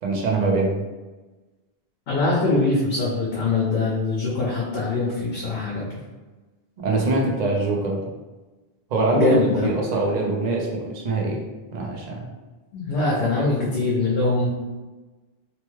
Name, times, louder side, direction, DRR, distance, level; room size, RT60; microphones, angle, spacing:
voice 1, 0.0-0.8 6.8-8.1 8.9-9.4 9.6-11.4 11.7-12.3, right 2 dB, 50° right, -1 dB, 0.6 m, -23 dB
voice 2, 2.1-5.9 9.1-9.7 12.7-14.5, left 3 dB, 70° left, -4 dB, 0.8 m, -23 dB
3.0 x 2.1 x 3.1 m, 1.2 s
omnidirectional pair, 1.0 m